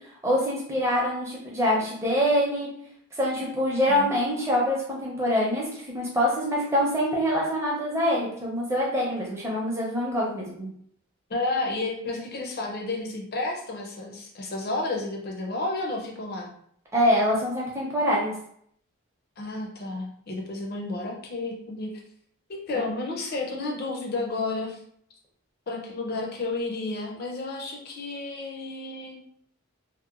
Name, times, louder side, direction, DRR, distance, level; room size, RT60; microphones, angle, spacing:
voice 1, 0.2-2.7 3.2-10.7 16.9-18.3 22.7-22.8, equal, 15° right, -4 dB, 0.6 m, -25 dB
voice 2, 11.3-16.5 19.4-21.9 22.5-24.8 25.7-29.2, left 2 dB, 45° left, 1 dB, 0.5 m, -31 dB
2.8 x 2.1 x 2.4 m, 0.66 s
head